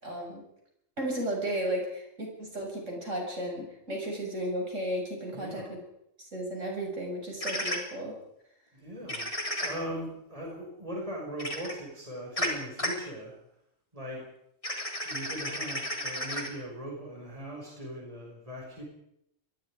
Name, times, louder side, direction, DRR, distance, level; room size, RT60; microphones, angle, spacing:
voice 1, 0.0-0.4 1.0-5.8 6.2-8.1, right 1 dB, 70° right, 0 dB, 7.7 m, -34 dB
voice 2, 5.3-5.8 8.7-9.3 9.6-13.4 13.9-14.2 15.0-18.8, equal, 25° right, -2 dB, 6.1 m, -39 dB
sound 1, 7.4-7.8 9.1-9.7 11.4-11.7 12.4-12.5 12.8-12.9 14.6-16.5, equal, 25° left, 4.0 m, -32 dB
27.0 x 22.0 x 5.1 m, 0.78 s
omnidirectional pair, 1.3 m